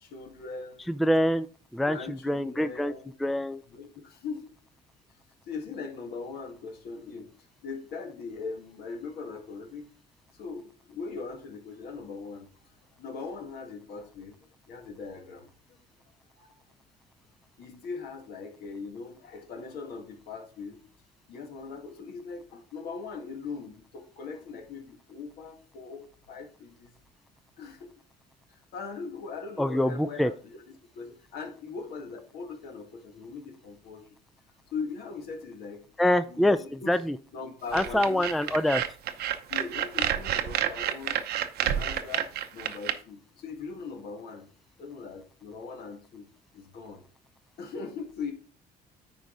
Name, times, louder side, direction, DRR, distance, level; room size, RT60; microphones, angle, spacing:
voice 1, 0.0-0.8 1.9-3.1 3.7-4.5 5.5-7.3 7.6-9.9 10.4-12.5 13.0-14.4 14.7-15.5 16.4-16.5 17.6-20.8 21.3-26.9 27.6-28.0 28.5-34.2 34.7-35.8 36.3-37.0 37.3-38.2 39.5-41.2 41.6-44.5 44.8-47.0 47.6-48.3, left 4 dB, 70° left, 4 dB, 1.9 m, -40 dB
voice 2, 0.9-1.5 1.7-2.0 2.3-2.9 3.2-3.6 29.6-30.3 36.0-37.2 37.7-38.8, left 1 dB, ahead, 13 dB, 0.3 m, -25 dB
sound 1, 37.7-42.9, right 10 dB, 70° right, 0.8 m, -29 dB
9.3 x 4.7 x 3.8 m, 0.41 s
cardioid pair, 110°, 17 cm